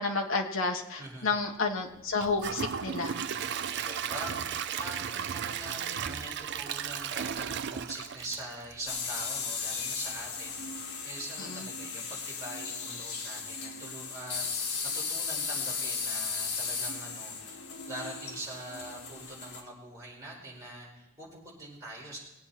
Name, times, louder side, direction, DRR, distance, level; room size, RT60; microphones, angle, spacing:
voice 1, 0.0-3.1 11.5-11.6, left 4 dB, 60° left, 2 dB, 1.5 m, -31 dB
voice 2, 1.0-1.4 3.7-17.6 17.9-22.2, right 1 dB, 15° right, -5 dB, 5.1 m, -44 dB
Gurgling / Toilet flush / Trickle dribble, 2.2-9.2 9.6-9.7 10.2-10.3, right 7 dB, 50° right, 0.5 m, -35 dB
sound 1, 8.9-19.6, left 5 dB, 85° left, 2.0 m, -36 dB
21.5 x 8.6 x 4.3 m, 0.93 s
head